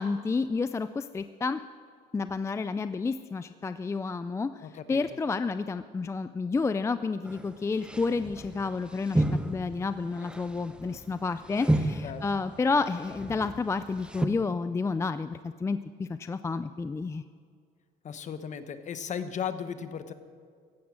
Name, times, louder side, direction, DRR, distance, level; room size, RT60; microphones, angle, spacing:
voice 1, 0.0-1.6 2.1-17.2, left 4 dB, 15° left, 12 dB, 0.4 m, -30 dB
voice 2, 4.6-5.0 12.0-12.2 18.0-20.1, left 7 dB, 45° left, 11 dB, 1.0 m, -36 dB
sound 1, 7.2-7.5 7.8-14.2, right 1 dB, 5° right, 0.8 m, -32 dB
15.5 x 11.0 x 6.2 m, 2.1 s
cardioid pair, 110°, 17 cm